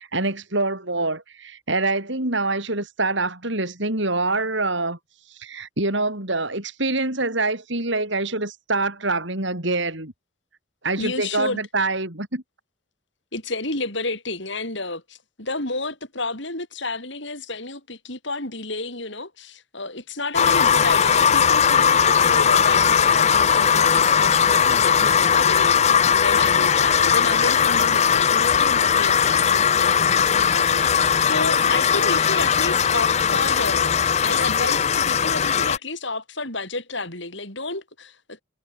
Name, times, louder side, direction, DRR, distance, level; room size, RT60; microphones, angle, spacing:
voice 1, 0.0-5.0 5.4-10.1 10.8-12.4, right 2 dB, 60° right, 4.8 m, -25 dB
voice 2, 11.0-11.6 13.3-38.4, left 3 dB, 60° left, 7.5 m, -31 dB
sound 1, 20.3-35.8, left 7 dB, 30° left, 0.5 m, -19 dB
head